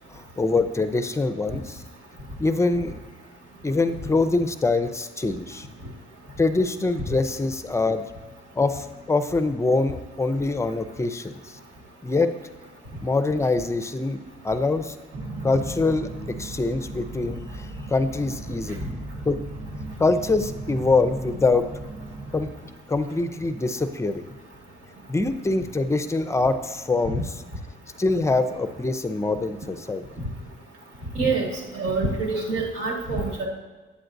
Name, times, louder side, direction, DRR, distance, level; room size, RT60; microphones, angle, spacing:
voice 1, 0.1-1.8 2.4-3.0 3.6-5.7 6.4-8.1 8.5-11.6 12.0-12.3 13.0-14.2 14.4-14.9 15.4-18.9 19.3-19.4 20.0-21.7 22.3-22.5 22.9-24.2 25.1-27.3 28.0-30.0, left 3 dB, 15° left, 10 dB, 0.5 m, -24 dB
sound 1, 15.1-22.5, right 2 dB, 30° right, 0.7 m, -37 dB
voice 2, 31.2-31.5 31.7-33.5, right 3 dB, 75° right, -1 dB, 1.8 m, -25 dB
8.5 x 7.7 x 2.6 m, 1.3 s
cardioid pair, 90°, 20 cm